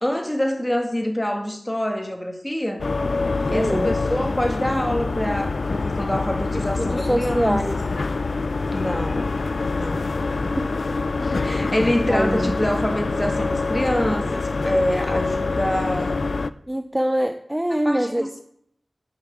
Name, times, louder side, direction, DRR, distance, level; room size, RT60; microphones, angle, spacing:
voice 1, 0.0-2.9 3.5-7.6 8.7-9.3 9.7-10.1 11.2-16.2 17.7-18.4, left 1 dB, 15° left, 4 dB, 2.1 m, -26 dB
sound 1, 2.8-16.5, left 3 dB, 80° left, 0.5 m, -25 dB
voice 2, 3.5-3.9 6.5-7.8 10.4-10.7 12.1-12.6 16.7-18.4, equal, 10° right, 8 dB, 0.7 m, -24 dB
11.0 x 6.5 x 8.2 m, 0.69 s
wide cardioid pair, 75°, 0 cm